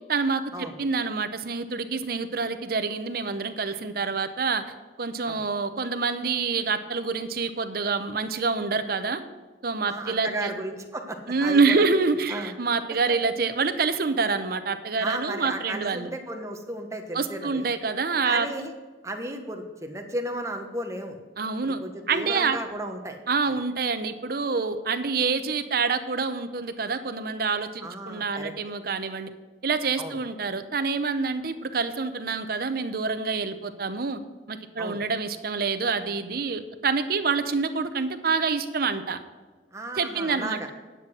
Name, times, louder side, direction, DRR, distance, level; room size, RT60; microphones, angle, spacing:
voice 1, 0.1-4.6 5.0-9.2 9.6-10.5 11.3-16.1 17.1-18.5 21.4-21.8 22.1-22.6 23.3-29.3 29.6-34.2 34.5-39.2 39.9-40.7, right 4 dB, 60° right, 10 dB, 0.8 m, -27 dB
voice 2, 9.9-11.8 12.3-12.5 13.1-13.2 15.0-17.6 18.2-18.7 19.0-21.2 21.8-23.2 23.5-23.6 27.8-28.5 30.0-30.2 34.8-35.0 39.7-40.6, right 1 dB, 15° right, 4 dB, 1.2 m, -34 dB
10.0 x 7.6 x 6.3 m, 1.3 s
head